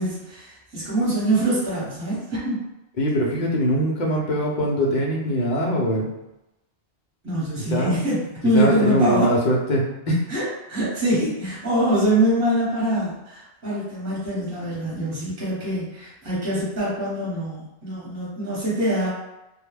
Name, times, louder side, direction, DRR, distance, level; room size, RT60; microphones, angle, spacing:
voice 1, 0.0-2.6 7.2-9.3 10.3-10.4 10.7-19.1, right 1 dB, 15° right, -8 dB, 0.9 m, -24 dB
voice 2, 3.0-6.1 7.6-7.9 8.5-10.3, equal, 50° left, -3 dB, 0.6 m, -22 dB
2.3 x 2.1 x 3.2 m, 0.93 s
omnidirectional pair, 1.2 m